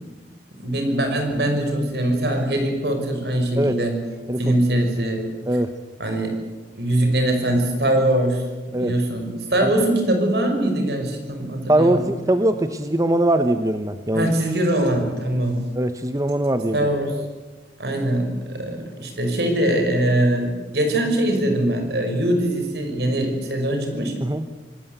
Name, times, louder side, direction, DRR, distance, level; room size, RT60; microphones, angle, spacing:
voice 1, 0.6-4.0 4.4-5.3 6.0-6.4 6.8-12.0 14.1-15.6 16.7-17.2 17.8-24.1, right 1 dB, 65° right, 5 dB, 5.8 m, -22 dB
voice 2, 11.7-14.3 15.8-16.9 24.2-24.4, right 1 dB, 20° right, 9 dB, 0.9 m, -21 dB
26.5 x 19.0 x 8.2 m, 1.3 s
head